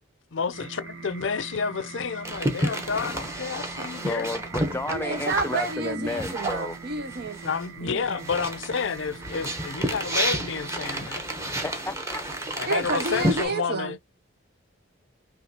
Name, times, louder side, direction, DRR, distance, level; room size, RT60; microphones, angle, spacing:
voice 1, 0.3-4.3 7.4-11.2 12.5-14.0, left 5 dB, 65° left, 0.6 m, -30 dB
sound 1, 0.5-11.4, right 5 dB, 85° right, 1.2 m, -42 dB
sound 2, 2.2-7.7 8.0-13.5, right 1 dB, 15° right, 1.0 m, -31 dB
voice 2, 4.0-6.8 11.6-12.5, left 2 dB, 10° left, 0.3 m, -32 dB
voice 3, 4.9-7.4 7.8-8.2 12.7-14.0, right 3 dB, 50° right, 0.6 m, -30 dB
5.8 x 2.4 x 2.8 m
head